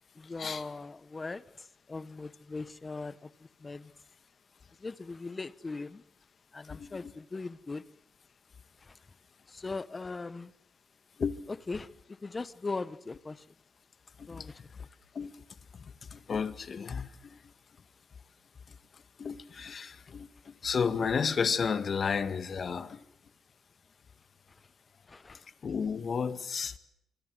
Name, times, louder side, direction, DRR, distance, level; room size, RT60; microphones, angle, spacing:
voice 1, 0.2-1.4 1.9-3.3 3.6-3.9 4.8-6.0 6.5-7.8 8.9-9.0 9.5-10.5 11.7-11.9 12.2-13.4 14.3-14.6 25.1-25.4, left 3 dB, 25° left, 1.2 m, -39 dB
voice 2, 6.7-7.1 11.2-11.4 14.2-14.5 15.1-15.4 15.7-17.4 18.7-23.0 25.3-26.8, left 6 dB, 45° left, 2.1 m, -33 dB
26.0 x 25.5 x 8.0 m
cardioid pair, 90°, 0 cm